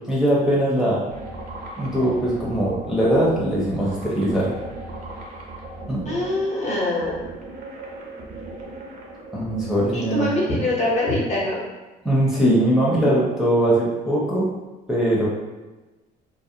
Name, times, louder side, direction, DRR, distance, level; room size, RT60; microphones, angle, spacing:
voice 1, 0.1-1.0 1.8-4.5 5.9-6.0 9.3-10.3 12.0-14.5 14.9-15.3, right 1 dB, 5° right, -7 dB, 0.6 m, -21 dB
sound 1, 1.1-10.6, right 2 dB, 60° right, 0.6 m, -38 dB
voice 2, 6.1-7.3 9.9-11.6, left 1 dB, 40° left, -4 dB, 0.8 m, -23 dB
2.4 x 2.1 x 2.7 m, 1.1 s
cardioid pair, 110°, 17 cm